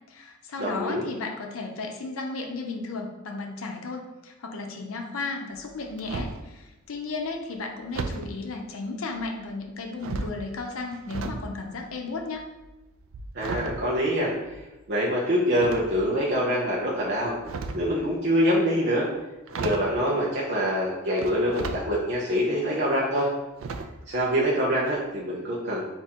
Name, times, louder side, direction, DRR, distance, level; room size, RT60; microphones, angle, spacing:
voice 1, 0.1-12.5, left 3 dB, 90° left, 2 dB, 0.6 m, -34 dB
voice 2, 0.6-1.0 13.3-14.3 14.9-17.4 17.7-19.1 19.5-23.3 24.1-25.8, equal, 55° right, -6 dB, 0.7 m, -25 dB
sound 1, 5.5-6.5 7.9-8.3 9.2-9.6 10.0-11.4 11.7-14.8 15.5-16.3 17.2-17.9 19.1-19.2 19.5-20.0 21.2-21.8 22.3-22.4 23.6-24.1 24.4-24.6 24.9-25.0, right 3 dB, 80° right, 0.4 m, -35 dB
3.6 x 2.7 x 4.3 m, 1.1 s
head